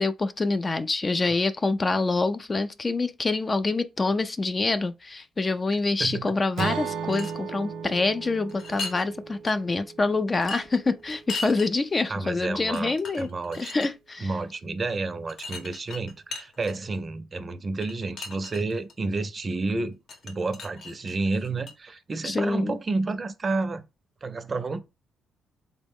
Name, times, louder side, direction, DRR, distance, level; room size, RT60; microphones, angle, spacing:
voice 1, 0.0-13.3 13.5-14.3 22.2-22.8, left 3 dB, 30° left, 0.3 m, -26 dB
Acoustic guitar / Strum, 6.6-10.7, right 6 dB, 85° right, 0.6 m, -35 dB
sound 1, 6.8-7.3 8.5-9.1 9.4-9.5 10.3-11.7 12.4-12.5 12.7-13.9 15.3-17.0 17.8-18.9 20.1-21.7, left 3 dB, 60° left, 0.9 m, -38 dB
voice 2, 12.1-13.7 14.2-20.0 20.2-23.8 24.2-24.8, right 3 dB, 35° right, 0.5 m, -30 dB
3.7 x 2.0 x 3.5 m
cardioid pair, 90°, 0 cm